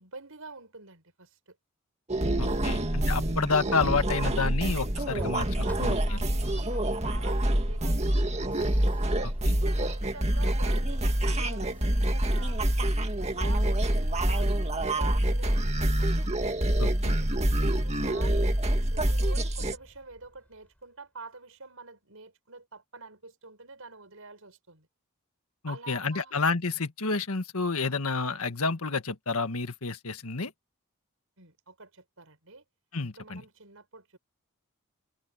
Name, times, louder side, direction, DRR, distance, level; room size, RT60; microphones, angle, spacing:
voice 1, 0.0-1.6 2.5-2.9 4.1-4.7 5.6-9.1 9.6-12.6 13.3-16.4 17.6-18.5 18.9-24.9 25.7-26.3 31.4-32.6 33.1-34.2, right 3 dB, 70° right, 6.4 m, -47 dB
sound 1, 2.1-19.8, right 1 dB, 30° right, 2.1 m, -26 dB
voice 2, 2.4-6.2 9.2-9.6 16.8-17.2 25.6-30.5 32.9-33.4, left 4 dB, 80° left, 1.7 m, -30 dB
sound 2, 5.1-20.9, equal, 5° left, 4.8 m, -49 dB
head